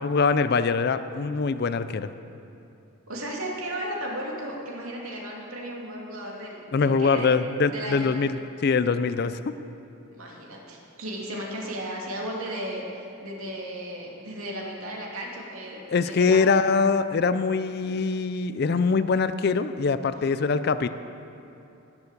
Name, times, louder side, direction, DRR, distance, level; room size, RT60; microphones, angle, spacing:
voice 1, 0.0-2.1 6.7-9.4 15.9-20.9, left 4 dB, 50° left, 12 dB, 0.4 m, -23 dB
voice 2, 3.1-7.3 7.7-8.1 10.2-12.8 13.2-16.4, right 1 dB, 85° right, -2 dB, 2.5 m, -35 dB
19.0 x 7.2 x 6.6 m, 2.8 s
head